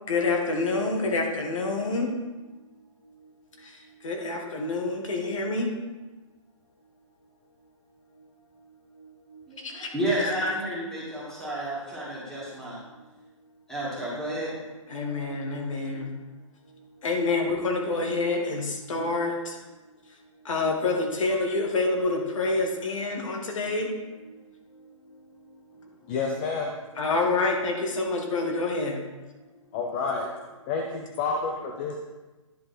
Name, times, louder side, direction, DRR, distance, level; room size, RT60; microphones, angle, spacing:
voice 1, 0.1-2.2 3.1-3.3 3.6-5.7 8.9-9.9 10.2-10.6 12.9-13.0 14.9-16.1 16.7-19.7 20.4-23.9 24.2-24.6 24.8-24.9 25.7-25.9 27.0-29.0, left 3 dB, 70° left, 1 dB, 1.7 m, -28 dB
voice 2, 9.9-11.0 11.4-12.0 12.3-12.7 13.7-14.5, right 1 dB, 5° left, -8 dB, 2.1 m, -30 dB
voice 3, 26.1-26.7 29.7-30.3 30.7-32.0, left 4 dB, 20° left, 1 dB, 0.5 m, -29 dB
10.0 x 5.4 x 4.3 m, 1.2 s
hypercardioid pair, 160°, 17 cm